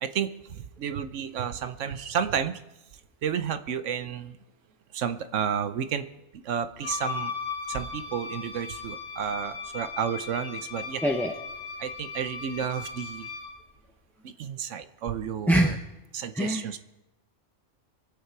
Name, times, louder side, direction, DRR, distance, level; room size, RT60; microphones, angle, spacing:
voice 1, 0.0-2.6 3.2-4.4 4.9-6.1 6.4-7.3 7.7-11.0 11.8-13.3 14.2-15.8 16.1-16.8, right 8 dB, 80° right, 11 dB, 1.1 m, -31 dB
Wind instrument woodwind instrument, 6.8-13.6, left 6 dB, 25° left, 1.9 m, -37 dB
voice 2, 11.0-11.3 15.5-15.8 16.3-16.8, right 1 dB, ahead, 0 dB, 0.7 m, -24 dB
24.0 x 8.4 x 4.6 m, 0.96 s
omnidirectional pair, 1.3 m